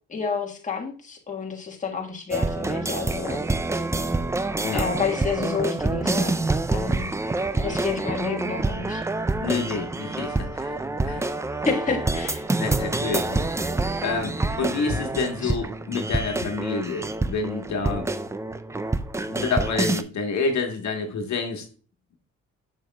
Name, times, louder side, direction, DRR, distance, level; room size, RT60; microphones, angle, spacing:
voice 1, 0.1-3.4 4.7-6.4 6.7-7.1 7.6-9.0 11.6-12.4 15.4-15.5, left 5 dB, 25° left, 1 dB, 1.4 m, -29 dB
sound 1, 2.3-20.0, right 2 dB, 10° right, 0.4 m, -27 dB
voice 2, 9.4-10.8 11.0-11.3 12.6-13.5 14.0-18.0 19.3-21.6, left 4 dB, 65° left, 3 dB, 1.5 m, -28 dB
7.1 x 6.6 x 2.3 m, 0.40 s
cardioid pair, 90°, 30 cm